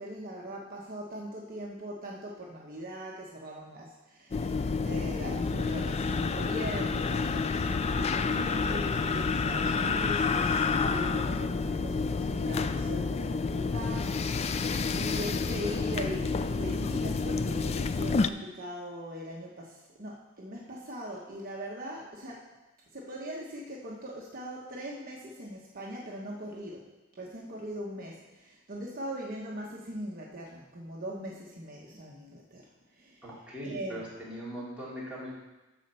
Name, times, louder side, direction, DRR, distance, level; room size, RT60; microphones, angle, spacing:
voice 1, 0.0-22.5 22.9-26.8 27.1-32.6 33.0-33.2 33.6-34.1, equal, 45° right, -3 dB, 1.1 m, -40 dB
sound 1, 4.3-18.3, left 4 dB, 30° left, 0.3 m, -29 dB
voice 2, 33.2-35.3, equal, 5° right, -8 dB, 3.1 m, -40 dB
12.5 x 4.3 x 6.8 m, 1.1 s
head